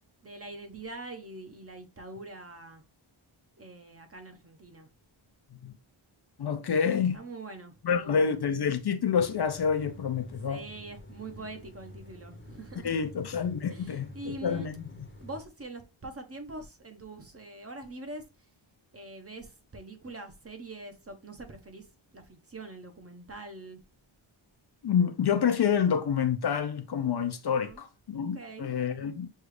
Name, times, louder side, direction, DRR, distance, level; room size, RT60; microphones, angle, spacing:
voice 1, 0.2-2.8 3.6-4.9 7.1-8.4 10.5-13.0 13.7-14.7 15.2-18.3 18.9-21.9 22.1-23.8 27.6-27.8 28.3-28.7, right 2 dB, 30° right, 0.7 m, -44 dB
voice 2, 6.4-7.2 7.8-10.6 12.8-14.7 24.8-29.3, left 7 dB, 55° left, 0.5 m, -28 dB
sound 1, 9.1-15.4, left 2 dB, 25° left, 0.8 m, -49 dB
6.4 x 2.4 x 3.2 m
wide cardioid pair, 120°, 50 cm